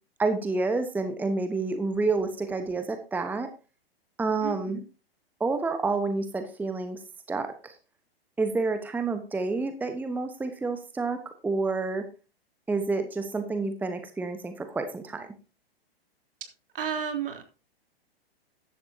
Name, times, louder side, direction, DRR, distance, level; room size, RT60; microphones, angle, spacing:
voice 1, 0.2-3.5 4.2-4.8 5.4-7.0 7.3-7.8 8.4-12.1 12.7-15.3, right 3 dB, 5° right, 8 dB, 1.1 m, -29 dB
voice 2, 4.4-4.8 16.7-17.4, right 8 dB, 60° right, 4 dB, 3.6 m, -32 dB
14.0 x 11.5 x 2.8 m, 0.33 s
figure-of-eight pair, 105°, 31 cm